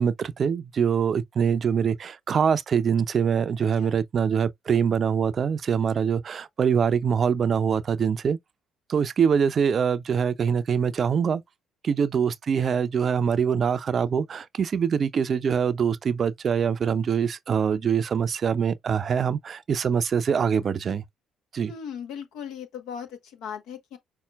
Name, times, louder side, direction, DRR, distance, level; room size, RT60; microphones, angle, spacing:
voice 1, 0.0-8.4 8.9-11.4 11.8-21.0 21.5-21.7, right 7 dB, 45° right, 0.5 m, -24 dB
voice 2, 21.7-24.0, left 8 dB, 70° left, 1.0 m, -38 dB
5.6 x 4.2 x 2.3 m
hypercardioid pair, 50°, 0 cm